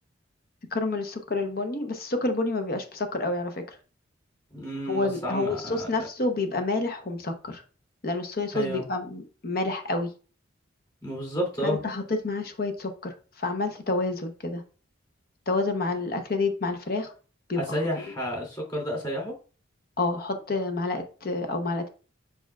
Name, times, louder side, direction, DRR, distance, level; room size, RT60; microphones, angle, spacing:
voice 1, 0.7-3.8 4.9-7.6 8.0-10.1 11.6-14.6 15.5-17.1 17.5-18.1 20.0-21.9, left 3 dB, 50° left, 6 dB, 0.9 m, -29 dB
voice 2, 4.5-5.9 8.5-8.8 11.0-11.8 17.6-19.3, equal, 25° left, -1 dB, 3.1 m, -31 dB
6.9 x 5.7 x 2.4 m, 0.36 s
head